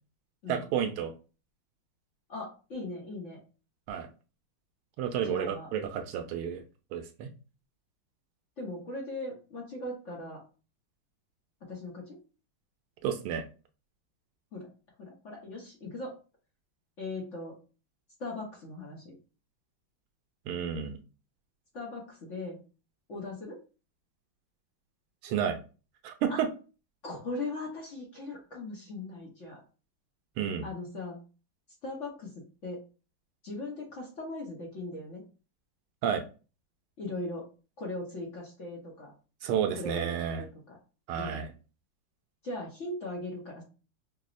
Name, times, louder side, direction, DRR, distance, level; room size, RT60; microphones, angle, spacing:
voice 1, 0.5-1.1 3.9-4.1 5.0-6.6 6.9-7.3 13.0-13.4 20.5-21.0 25.2-25.6 26.0-26.5 30.4-30.7 36.0-36.2 39.4-40.4 41.1-41.5, right 8 dB, 90° right, 6 dB, 1.5 m, -31 dB
voice 2, 2.3-3.4 5.2-5.7 8.6-10.4 11.6-12.2 14.5-14.7 15.0-16.2 17.0-17.6 18.2-19.2 21.7-22.6 23.1-23.6 26.3-26.4 27.0-29.6 30.6-31.2 31.8-32.3 32.6-32.8 33.4-35.2 37.0-37.5 37.8-39.1 39.7-40.8 41.2-41.4 42.4-43.6, left 2 dB, 55° left, -2 dB, 0.8 m, -39 dB
5.9 x 2.0 x 2.5 m, 0.34 s
omnidirectional pair, 2.3 m